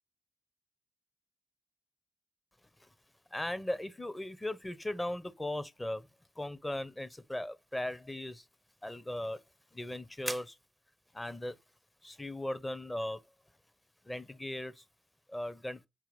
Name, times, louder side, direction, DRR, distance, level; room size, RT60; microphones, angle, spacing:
voice 1, 3.3-6.0 6.4-8.3 8.8-9.4 9.8-10.4 11.2-11.5 12.2-13.2 14.1-14.7 15.3-15.8, left 1 dB, 15° left, 0.9 m, -37 dB
sound 1, 6.7-15.2, right 1 dB, 5° right, 0.6 m, -51 dB
4.6 x 4.6 x 5.3 m
cardioid pair, 65°, 0 cm